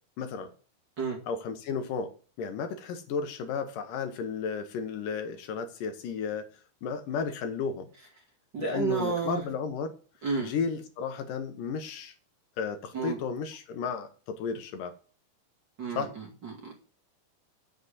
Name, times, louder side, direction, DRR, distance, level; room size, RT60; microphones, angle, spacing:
voice 1, 0.2-0.5 1.3-2.1 2.4-6.5 6.8-7.9 8.6-10.0 10.4-12.1 12.6-14.9 16.0-16.1, left 5 dB, 70° left, 2.5 m, -33 dB
voice 2, 8.5-9.5 10.2-10.5 12.9-13.2 15.8-16.7, right 5 dB, 35° right, 2.3 m, -31 dB
7.9 x 6.7 x 7.8 m
omnidirectional pair, 4.1 m